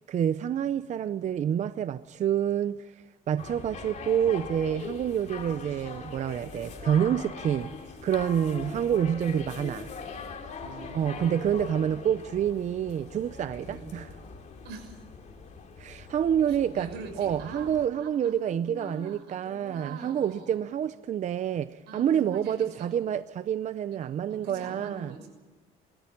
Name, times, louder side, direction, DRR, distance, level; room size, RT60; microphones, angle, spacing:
voice 1, 0.1-2.8 3.3-7.7 8.0-9.9 10.9-14.1 15.8-25.1, right 9 dB, 45° right, 0.6 m, -28 dB
sound 1, 3.4-17.9, left 5 dB, 45° left, 3.2 m, -42 dB
voice 2, 8.3-8.6 10.6-11.3 13.6-13.9 14.6-15.0 16.5-17.7 17.9-20.5 21.9-22.9 23.9-24.0 24.3-25.3, right 3 dB, 85° right, 6.2 m, -44 dB
22.0 x 13.5 x 9.9 m
cardioid pair, 110°, 17 cm